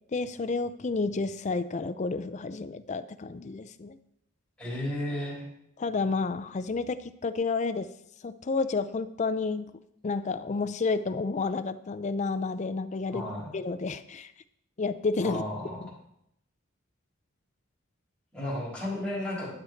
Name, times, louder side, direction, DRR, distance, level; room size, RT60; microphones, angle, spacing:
voice 1, 0.1-4.0 5.8-7.9 8.2-9.7 10.0-13.2 13.5-14.3 14.8-15.4 15.8-15.9, left 4 dB, 35° left, 12 dB, 0.4 m, -30 dB
voice 2, 4.6-5.5 13.1-13.5 15.2-15.8 18.3-19.5, left 1 dB, 5° left, -7 dB, 3.6 m, -33 dB
11.5 x 6.3 x 4.5 m, 0.78 s
head